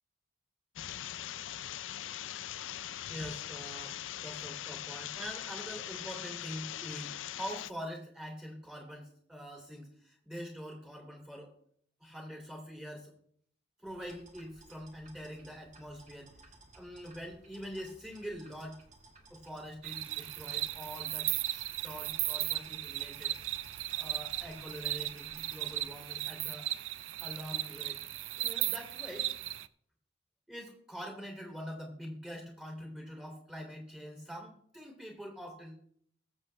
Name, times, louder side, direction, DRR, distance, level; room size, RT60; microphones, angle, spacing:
sound 1, 0.8-7.7, left 12 dB, 75° left, 0.4 m, -41 dB
voice 1, 3.1-11.5 12.0-13.1 13.8-18.8 19.3-23.4 24.0-26.7 27.2-28.0 28.4-29.3 30.5-35.7, equal, 5° right, 0 dB, 2.5 m, -45 dB
sound 2, 13.8-25.9, right 2 dB, 40° right, 2.3 m, -58 dB
sound 3, 19.8-29.7, right 15 dB, 75° right, 0.4 m, -36 dB
21.0 x 7.6 x 3.3 m, 0.64 s
head